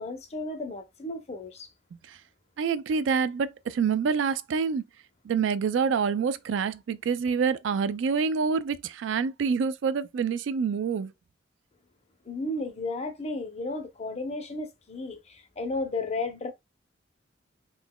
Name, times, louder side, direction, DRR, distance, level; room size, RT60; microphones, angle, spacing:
voice 1, 0.0-1.7 12.3-16.5, left 2 dB, 35° left, 0.7 m, -33 dB
voice 2, 2.6-4.8 5.2-11.1, right 6 dB, 75° right, 0.3 m, -27 dB
3.8 x 2.9 x 2.2 m
head